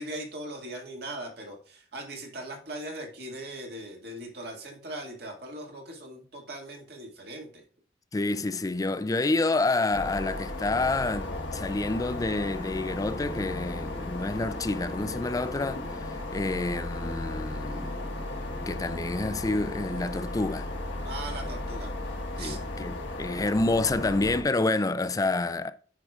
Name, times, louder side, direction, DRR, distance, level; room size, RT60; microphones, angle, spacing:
voice 1, 0.0-7.6 21.0-21.9 22.4-22.6, right 1 dB, 60° right, 1.9 m, -39 dB
voice 2, 8.1-17.9 18.7-20.7 22.4-25.7, left 2 dB, 20° left, 0.4 m, -28 dB
sound 1, 9.9-24.4, left 2 dB, 80° left, 1.3 m, -35 dB
sound 2, 12.3-21.4, left 1 dB, 15° right, 1.2 m, -46 dB
9.9 x 4.9 x 2.4 m
head